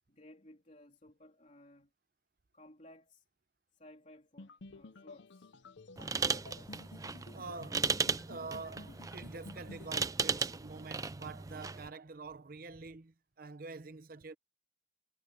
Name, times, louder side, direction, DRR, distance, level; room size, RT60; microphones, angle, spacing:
voice 1, 0.1-1.9 2.5-3.2 3.7-5.6, left 1 dB, 40° left, 3.2 m, -58 dB
sound 1, 4.4-9.9, left 3 dB, 70° left, 0.7 m, -53 dB
sound 2, 6.0-11.9, right 5 dB, 20° right, 0.4 m, -36 dB
voice 2, 7.3-14.4, right 4 dB, 50° right, 0.8 m, -46 dB
head